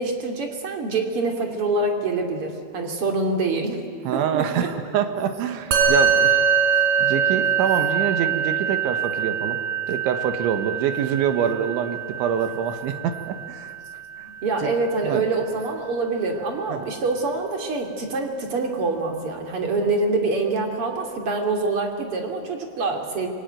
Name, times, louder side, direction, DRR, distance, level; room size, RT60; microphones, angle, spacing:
voice 1, 0.0-3.8 4.1-4.7 14.2-23.3, right 3 dB, 35° right, 3 dB, 2.8 m, -25 dB
voice 2, 4.1-6.4 7.0-9.6 9.9-13.7 14.2-14.3 14.6-14.7 15.0-15.2 16.7-16.9, right 8 dB, 90° right, 7 dB, 3.9 m, -25 dB
Musical instrument, 5.7-15.3, right 7 dB, 55° right, 5.4 m, -24 dB
27.0 x 22.5 x 9.3 m, 2.2 s
omnidirectional pair, 5.2 m